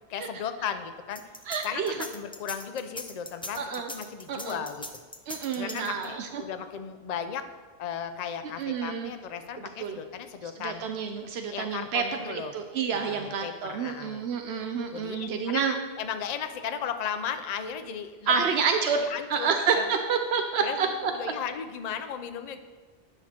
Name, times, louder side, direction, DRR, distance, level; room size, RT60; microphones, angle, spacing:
voice 1, 0.1-1.2 1.6-3.6 3.9-5.0 5.6-7.4 7.8-10.8 11.5-12.5 12.9-14.2 14.9-18.5 19.0-19.9 20.6-22.6, left 8 dB, 50° left, 9 dB, 0.6 m, -36 dB
sound 1, 1.1-6.2, left 1 dB, 10° left, 0.3 m, -40 dB
voice 2, 1.5-1.9 3.6-3.9 4.3-4.6 5.3-6.4 8.6-9.1 9.8-10.0 10.6-15.8 18.3-21.1, right 6 dB, 85° right, 5 dB, 0.9 m, -29 dB
9.7 x 6.0 x 4.3 m, 1.4 s
omnidirectional pair, 1.1 m